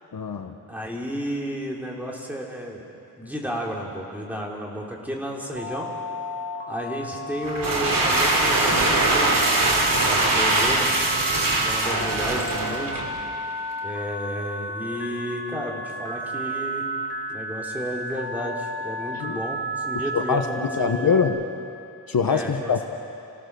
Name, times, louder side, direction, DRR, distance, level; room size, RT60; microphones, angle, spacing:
voice 1, 0.1-0.6 19.1-19.4 19.9-21.4 22.1-22.8, left 6 dB, 65° left, 6 dB, 1.1 m, -24 dB
voice 2, 0.7-2.8 3.2-5.9 6.7-9.7 10.0-10.9 11.6-13.0 13.8-16.8 17.3-19.6 19.9-21.2 22.3-22.7, equal, 5° right, -2 dB, 3.3 m, -32 dB
Telephone, 5.6-21.3, right 1 dB, 30° right, 3.6 m, -32 dB
sound 1, 7.4-13.2, right 2 dB, 60° right, 3.5 m, -22 dB
29.0 x 16.5 x 6.8 m, 2.7 s
wide cardioid pair, 120°, 38 cm